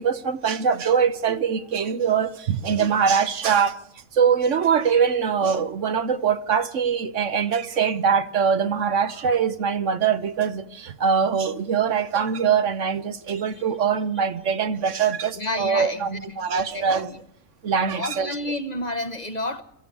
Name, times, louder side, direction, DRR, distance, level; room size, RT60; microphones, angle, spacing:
voice 1, 0.0-3.8 4.1-17.1 17.6-18.3, right 6 dB, 65° right, 1.3 m, -23 dB
voice 2, 15.3-16.2 16.5-17.2 17.8-19.6, left 1 dB, 35° left, 1.0 m, -30 dB
23.0 x 14.5 x 8.3 m
omnidirectional pair, 1.4 m